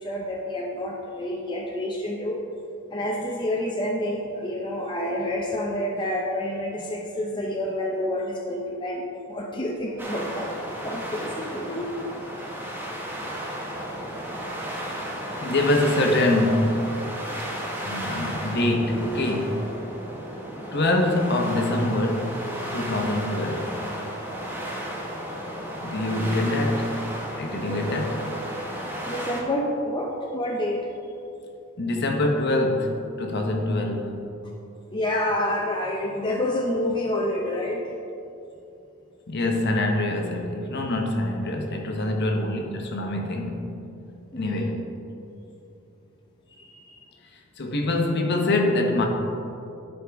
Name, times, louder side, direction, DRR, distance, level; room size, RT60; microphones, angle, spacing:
voice 1, 0.0-2.4 2.9-9.0 9.3-10.5 10.8-11.9 27.6-28.0 29.1-30.9 34.9-37.9 44.3-44.7 46.5-47.0, left 1 dB, 20° left, -2 dB, 0.5 m, -28 dB
sound 1, 10.0-29.4, equal, 10° right, 0.9 m, -34 dB
voice 2, 15.4-17.0 17.8-19.8 20.7-22.4 22.7-23.8 25.8-27.0 27.3-28.3 31.8-34.3 39.3-43.8 44.4-44.9 47.6-49.1, left 1 dB, 50° left, 2 dB, 0.9 m, -25 dB
11.5 x 5.4 x 3.5 m, 2.7 s
head